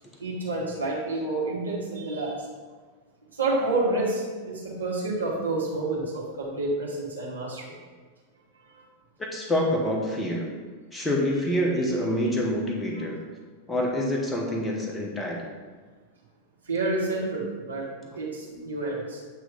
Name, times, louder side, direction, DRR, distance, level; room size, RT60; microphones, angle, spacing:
voice 1, 0.2-2.5 3.3-7.7 8.5-8.8 12.9-13.1 16.6-19.2, right 2 dB, 75° right, -5 dB, 1.5 m, -29 dB
voice 2, 9.3-10.5 10.9-13.2 13.7-15.5, equal, 10° left, -2 dB, 1.1 m, -26 dB
8.7 x 3.1 x 5.4 m, 1.5 s
figure-of-eight pair, 90°, 0 cm